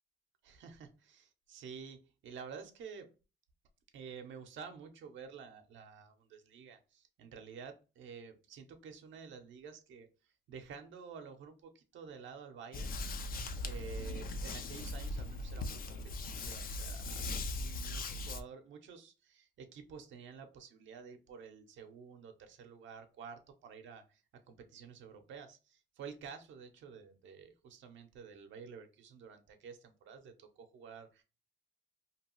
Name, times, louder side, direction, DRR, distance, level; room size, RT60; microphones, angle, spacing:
voice 1, 0.4-3.1 3.9-10.1 10.5-13.0 13.6-17.3 17.5-24.2 24.5-31.2, right 6 dB, 75° right, 6 dB, 0.6 m, -50 dB
sound 1, 12.7-18.4, left 2 dB, 45° left, 0.4 m, -39 dB
2.8 x 2.3 x 2.9 m, 0.31 s
cardioid pair, 90°, 20 cm